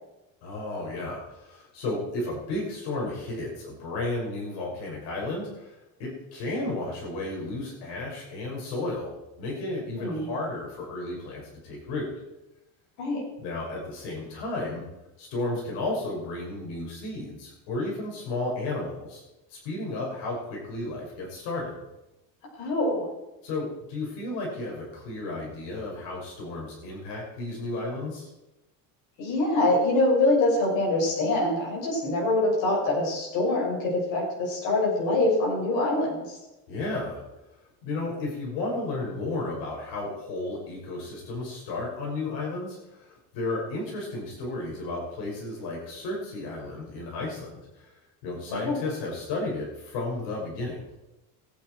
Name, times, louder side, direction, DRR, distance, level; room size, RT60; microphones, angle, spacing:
voice 1, 0.4-12.1 13.4-14.8 15.2-19.2 19.5-21.8 23.4-28.3 36.7-37.2 37.8-50.8, left 2 dB, 75° left, -2 dB, 6.0 m, -33 dB
voice 2, 9.9-10.3 13.0-13.2 22.6-23.0 29.2-36.4 48.5-48.7, left 2 dB, 50° left, -3 dB, 6.5 m, -24 dB
23.0 x 9.3 x 4.7 m, 0.97 s
cardioid pair, 175°, 39 cm